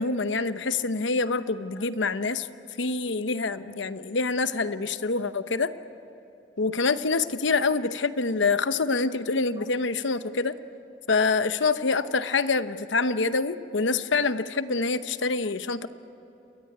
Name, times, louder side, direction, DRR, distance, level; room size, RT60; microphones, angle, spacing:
voice 1, 0.0-2.5 2.8-5.7 6.6-10.5 11.1-15.9, left 4 dB, 80° left, 12 dB, 0.9 m, -26 dB
28.5 x 22.0 x 9.4 m, 3.0 s
head